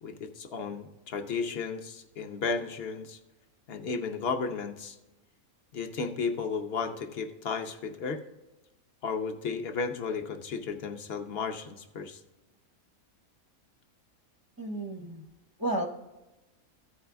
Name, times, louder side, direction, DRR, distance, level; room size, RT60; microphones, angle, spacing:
voice 1, 0.0-3.2 3.7-5.0 5.7-8.2 9.0-12.2, left 5 dB, 50° left, 6 dB, 0.9 m, -34 dB
voice 2, 14.6-15.2 15.6-15.9, right 1 dB, 25° right, 0 dB, 0.5 m, -32 dB
14.5 x 4.8 x 3.4 m, 1.0 s
omnidirectional pair, 1.5 m